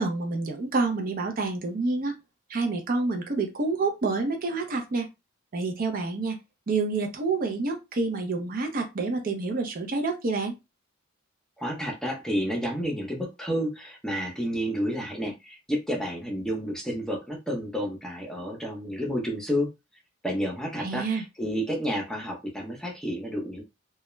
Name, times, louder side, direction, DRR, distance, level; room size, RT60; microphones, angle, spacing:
voice 1, 0.0-2.2 2.5-5.1 5.5-6.4 6.7-10.5 20.8-21.2, right 3 dB, 45° right, 4 dB, 0.5 m, -28 dB
voice 2, 11.6-19.7 20.2-23.6, equal, 5° left, -2 dB, 0.6 m, -30 dB
2.2 x 2.1 x 3.0 m, 0.24 s
head